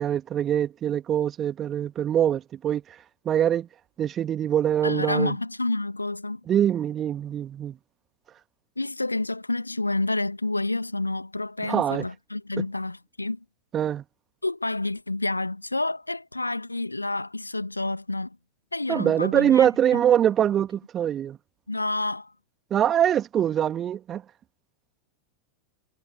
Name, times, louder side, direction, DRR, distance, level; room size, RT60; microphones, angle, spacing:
voice 1, 0.0-2.8 3.2-3.7 4.0-5.3 6.5-7.8 11.6-12.0 13.7-14.0 18.9-21.4 22.7-24.2, right 10 dB, 25° right, 2.2 m, -23 dB
voice 2, 4.8-6.4 8.8-13.4 14.4-18.4 18.7-20.0 21.7-22.3, left 2 dB, 85° left, 2.0 m, -29 dB
figure-of-eight pair, 90°, 0 cm